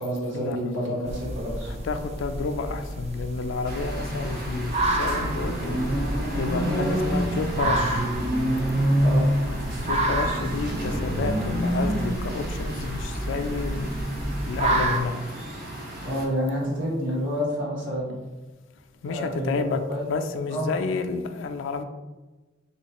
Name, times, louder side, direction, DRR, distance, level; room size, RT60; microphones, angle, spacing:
voice 1, 0.0-1.7 6.6-6.8 9.0-9.3 16.0-18.1 19.1-19.6 19.9-20.1 20.5-20.7, equal, 65° right, -4 dB, 1.2 m, -28 dB
sound 1, 1.1-15.0, right 1 dB, 30° right, 0.3 m, -30 dB
voice 2, 1.6-5.8 6.4-8.1 9.8-13.9 14.4-15.2 19.0-19.8 20.1-21.8, left 4 dB, 65° left, 7 dB, 0.3 m, -30 dB
sound 2, 3.6-16.2, right 1 dB, 50° right, 0.8 m, -28 dB
sound 3, 4.5-12.9, equal, 85° right, 0.7 m, -42 dB
3.2 x 3.0 x 2.9 m, 1.2 s
head